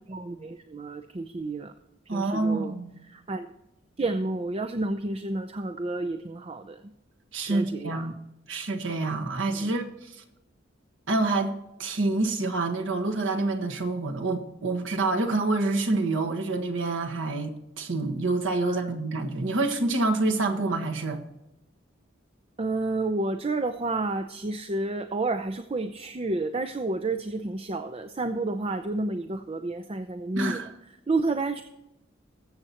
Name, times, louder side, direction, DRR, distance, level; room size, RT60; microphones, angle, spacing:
voice 1, 0.1-1.7 2.1-2.8 3.1-3.5 4.0-6.9 7.5-8.1 9.5-9.7 18.6-18.9 22.6-30.7 31.1-31.6, right 2 dB, 30° right, 0.5 m, -30 dB
voice 2, 2.1-3.0 7.3-8.1 8.5-10.2 11.1-21.2 30.3-30.7, right 2 dB, 80° right, 1.4 m, -27 dB
20.5 x 7.8 x 2.9 m
head